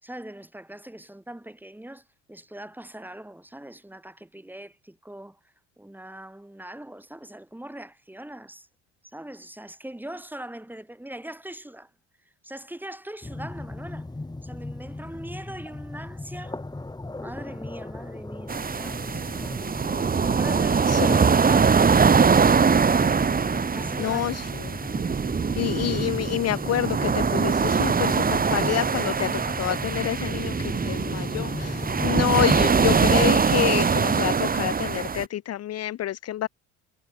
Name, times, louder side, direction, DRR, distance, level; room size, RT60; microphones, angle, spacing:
voice 1, 0.0-5.4 5.8-8.7 9.0-11.9 12.4-14.1 14.4-16.6 17.2-19.3 23.7-24.2, right 1 dB, 5° right, 2.7 m, -41 dB
sound 1, 13.2-32.9, left 2 dB, 10° left, 2.3 m, -37 dB
sound 2, 18.5-35.2, right 5 dB, 25° right, 1.4 m, -22 dB
voice 2, 20.9-21.2 24.0-24.8 25.6-36.5, left 12 dB, 45° left, 0.8 m, -28 dB
supercardioid pair, 70°, 35 cm